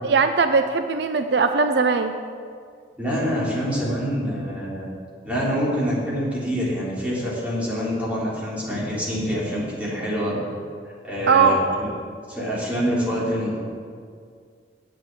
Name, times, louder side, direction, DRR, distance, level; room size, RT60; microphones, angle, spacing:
voice 1, 0.0-2.1 11.3-11.6, right 5 dB, 65° right, 8 dB, 0.5 m, -19 dB
voice 2, 3.0-4.9 5.2-10.4 10.8-11.9 12.3-13.6, equal, 10° right, -8 dB, 3.6 m, -26 dB
9.2 x 8.3 x 7.5 m, 2.1 s
head